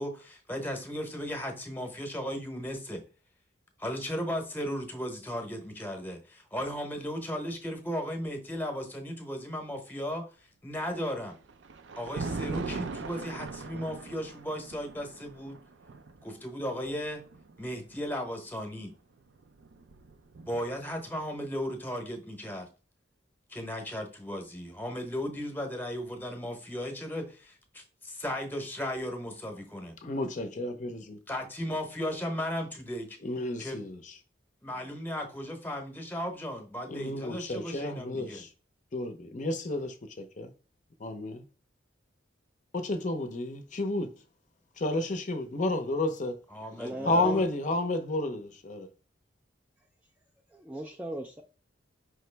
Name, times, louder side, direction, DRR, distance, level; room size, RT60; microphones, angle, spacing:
voice 1, 0.0-3.0 3.8-11.4 12.0-15.6 16.2-17.2 17.6-18.9 20.5-22.7 23.5-30.0 31.3-33.2 33.6-33.8 34.6-38.4 46.5-47.4, equal, 10° left, 0.9 m, -36 dB
Thunder, 10.9-18.1 19.2-20.9, right 3 dB, 75° right, 0.5 m, -40 dB
voice 2, 30.0-31.2 33.2-34.1 36.9-38.5 38.9-40.5 41.0-41.4 42.7-44.1 44.8-46.3 47.0-48.9, left 2 dB, 40° left, 0.6 m, -31 dB
voice 3, 46.8-47.4 50.5-51.4, equal, 10° right, 0.3 m, -37 dB
5.1 x 3.0 x 3.3 m
head